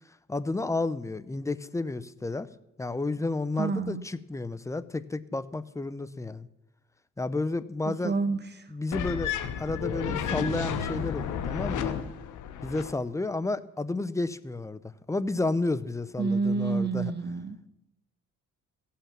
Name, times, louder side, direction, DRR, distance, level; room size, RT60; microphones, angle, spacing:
voice 1, 0.3-2.5 2.8-6.5 7.2-8.2 8.7-11.9 12.6-17.1, left 2 dB, 10° left, 15 dB, 0.5 m, -31 dB
voice 2, 3.6-4.0 7.8-8.7 16.2-17.6, right 4 dB, 35° right, 10 dB, 1.1 m, -29 dB
sound 1, 8.9-12.9, left 7 dB, 80° left, 1.0 m, -32 dB
15.5 x 5.8 x 7.3 m, 0.88 s
cardioid pair, 90°, 30 cm